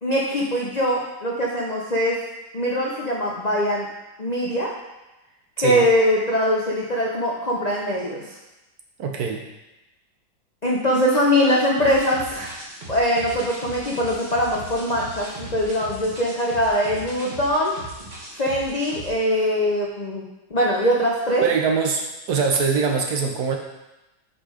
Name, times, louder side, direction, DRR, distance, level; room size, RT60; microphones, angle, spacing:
voice 1, 0.0-2.2 2.5-3.9 4.2-4.7 5.6-8.3 10.6-12.5 12.9-17.7 18.3-21.4, equal, 80° left, -3 dB, 0.3 m, -22 dB
voice 2, 9.0-9.4 21.4-23.6, right 5 dB, 65° right, 3 dB, 1.1 m, -23 dB
sound 1, 11.8-19.1, right 2 dB, 25° right, 1.4 m, -39 dB
5.4 x 5.0 x 4.9 m, 1.0 s
omnidirectional pair, 2.0 m